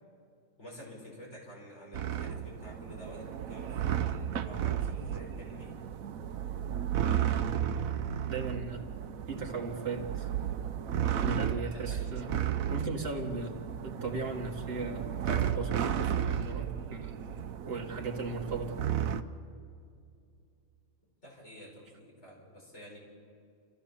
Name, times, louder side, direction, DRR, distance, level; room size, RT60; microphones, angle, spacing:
voice 1, 0.6-5.8 11.7-12.2 21.2-23.0, equal, 55° left, -3 dB, 6.1 m, -50 dB
sound 1, 1.9-19.2, right 9 dB, 80° right, 1.2 m, -33 dB
voice 2, 8.3-8.9 9.3-10.3 11.2-12.3 12.7-13.6 13.8-17.2 17.7-18.8, right 3 dB, 45° right, 1 dB, 1.9 m, -37 dB
29.0 x 15.0 x 7.2 m, 2.4 s
omnidirectional pair, 1.4 m